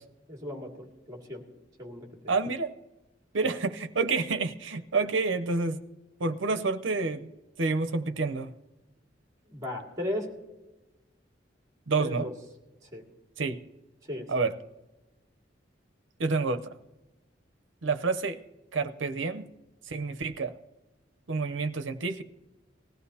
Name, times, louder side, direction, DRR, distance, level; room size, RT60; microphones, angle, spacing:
voice 1, 0.3-1.4 1.8-2.4 3.4-3.5 9.5-10.3 12.0-12.3 12.8-13.0 14.1-14.3, left 1 dB, 20° right, 1 dB, 2.2 m, -36 dB
voice 2, 2.3-2.7 3.3-5.8 6.2-7.3 7.6-8.5 11.9-12.3 13.4-13.6 14.3-14.5 16.2-16.7 17.8-18.4 18.7-19.5 19.9-20.5 21.3-22.2, right 4 dB, 85° right, 10 dB, 0.7 m, -28 dB
19.5 x 15.0 x 2.8 m, 1.1 s
head